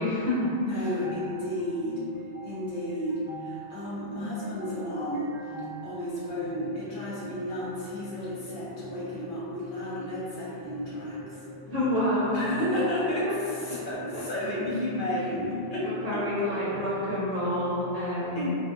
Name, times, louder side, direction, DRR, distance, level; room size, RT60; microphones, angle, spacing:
voice 1, 0.0-0.8 11.7-12.4 13.2-13.3 13.7-13.8 14.1-14.2 15.8-18.5, left 1 dB, 45° right, -11 dB, 0.7 m, -28 dB
voice 2, 0.6-2.0 2.4-5.3 5.8-11.3 12.3-15.9 18.3-18.6, left 1 dB, 60° left, -8 dB, 0.7 m, -32 dB
sound 1, 0.7-17.9, equal, 10° left, 0.9 m, -45 dB
2.5 x 2.2 x 2.5 m, 2.6 s
omnidirectional pair, 1.0 m